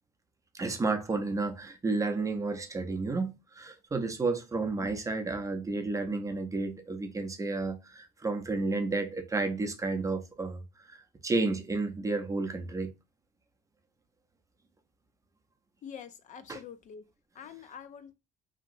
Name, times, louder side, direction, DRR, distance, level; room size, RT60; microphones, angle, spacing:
voice 1, 0.5-10.6 10.9-12.9 16.5-16.6, right 3 dB, 20° right, 0.6 m, -31 dB
voice 2, 15.8-17.1 17.4-18.1, left 8 dB, 45° left, 0.4 m, -46 dB
2.9 x 2.8 x 2.5 m
cardioid pair, 110°, 17 cm